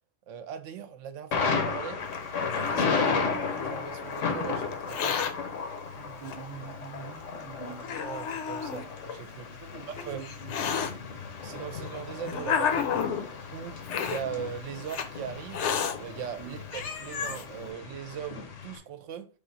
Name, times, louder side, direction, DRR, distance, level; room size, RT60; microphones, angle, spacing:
voice 1, 0.3-2.0 2.4-5.2 8.0-10.3 11.4-13.2 13.5-15.7 16.0-19.3, right 8 dB, 80° right, 0.9 m, -40 dB
Thunder, 1.3-18.8, left 5 dB, 85° left, 1.2 m, -34 dB
Hiss, 2.1-3.8 4.7-5.3 6.3-6.4 7.2-7.3 7.8-8.8 9.7-10.9 11.7-13.3 13.8-14.2 14.9-15.1 15.5-15.9 16.4-16.5 16.7-17.4, left 7 dB, 70° left, 0.9 m, -31 dB
voice 2, 5.9-8.0 9.6-10.9 16.4-16.6, right 6 dB, 40° right, 0.4 m, -45 dB
4.8 x 2.5 x 3.9 m
omnidirectional pair, 1.3 m